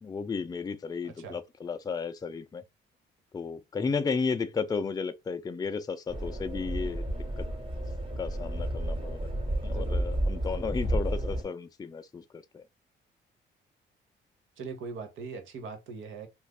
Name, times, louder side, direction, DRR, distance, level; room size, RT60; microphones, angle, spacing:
voice 1, 0.0-2.6 3.3-7.1 7.4-7.5 8.2-9.3 9.6-12.6, left 5 dB, 20° left, 0.4 m, -33 dB
voice 2, 1.0-1.4 9.7-10.1 14.6-16.3, right 5 dB, 75° right, 0.9 m, -41 dB
sound 1, 6.1-11.4, right 1 dB, 25° right, 1.1 m, -31 dB
2.5 x 2.4 x 3.3 m
cardioid pair, 90°, 20 cm